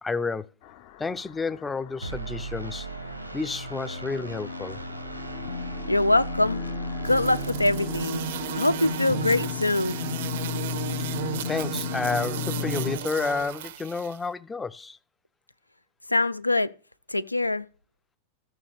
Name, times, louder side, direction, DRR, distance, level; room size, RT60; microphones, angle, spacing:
voice 1, 0.0-0.5 1.0-2.9 3.3-4.8 11.0-11.1 11.5-15.0, left 4 dB, 15° left, 0.5 m, -30 dB
sound 1, 0.6-13.0, left 8 dB, 50° left, 0.7 m, -35 dB
sound 2, 2.0-8.5, right 3 dB, 85° right, 0.9 m, -37 dB
voice 2, 5.9-6.6 7.0-8.2 8.5-10.0 16.1-16.7 17.1-17.7, left 2 dB, 85° left, 0.4 m, -23 dB
sound 3, 7.0-14.2, right 12 dB, 55° right, 0.5 m, -34 dB
14.0 x 6.7 x 3.5 m
figure-of-eight pair, 90°, 0 cm